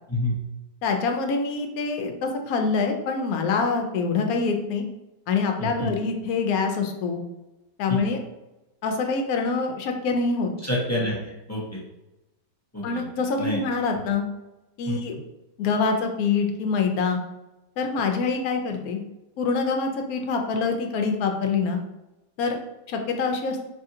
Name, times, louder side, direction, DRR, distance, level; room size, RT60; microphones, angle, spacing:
voice 1, 0.8-4.8 5.3-7.2 7.8-8.2 8.8-10.5 12.8-14.2 14.8-15.2 15.6-17.2 17.8-19.0 19.4-21.8 22.4-22.6 22.9-23.6, left 4 dB, 65° left, 4 dB, 0.9 m, -25 dB
voice 2, 5.6-5.9 7.9-8.0 10.6-11.8 12.7-13.0 13.4-13.6 14.9-15.0, left 1 dB, 20° left, -6 dB, 0.4 m, -28 dB
3.7 x 3.4 x 2.7 m, 0.98 s
omnidirectional pair, 1.9 m